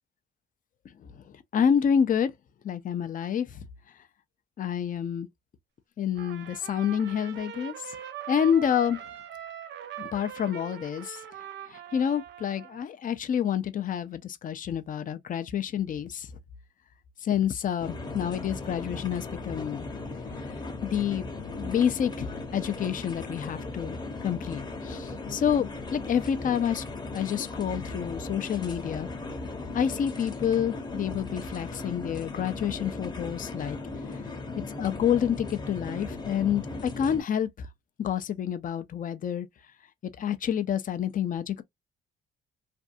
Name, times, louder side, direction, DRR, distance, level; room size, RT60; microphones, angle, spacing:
voice 1, 1.5-2.3 2.6-3.6 4.6-5.3 6.0-7.9 8.3-9.0 10.0-11.2 11.7-16.3 17.2-19.9 20.8-21.3 21.6-22.3 22.5-26.8 27.1-29.1 29.7-33.8 34.8-37.7 38.0-39.5 40.2-41.6, left 8 dB, 40° left, 0.5 m, -28 dB
Trumpet, 6.1-12.9, right 10 dB, 65° right, 0.7 m, -42 dB
sound 1, 17.8-37.2, left 3 dB, 20° left, 0.9 m, -37 dB
2.6 x 2.2 x 2.5 m
cardioid pair, 90°, 20 cm